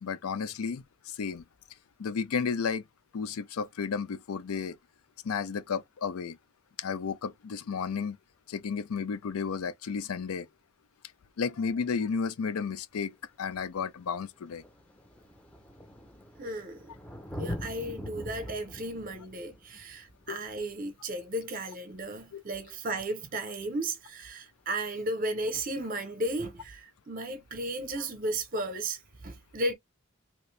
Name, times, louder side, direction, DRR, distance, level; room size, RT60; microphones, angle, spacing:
voice 1, 0.0-1.4 2.0-2.8 3.1-4.8 5.2-6.4 6.8-8.2 8.5-10.5 11.4-14.6 20.3-20.4 22.3-22.4, left 6 dB, 90° left, 0.4 m, -33 dB
Thunder, 13.0-13.1 14.0-14.1 14.3-21.7 23.3-23.4, equal, 5° left, 0.6 m, -43 dB
voice 2, 16.4-16.9 17.3-29.7, right 1 dB, 40° right, 0.7 m, -34 dB
2.9 x 2.6 x 3.2 m
head